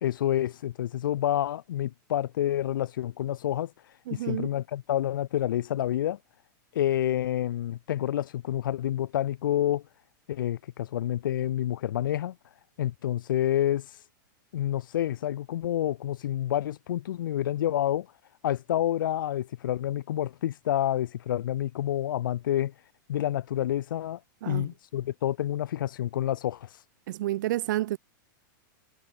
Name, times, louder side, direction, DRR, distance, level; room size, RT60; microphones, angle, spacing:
voice 1, 0.0-3.7 4.1-6.2 6.7-9.8 10.3-12.3 12.8-13.9 14.5-18.1 18.4-22.7 23.1-24.2 24.5-26.7, left 12 dB, 80° left, 2.9 m, -28 dB
voice 2, 4.1-4.5 24.4-24.7 27.1-28.0, right 15 dB, 65° right, 3.7 m, -30 dB
supercardioid pair, 155°, 11 cm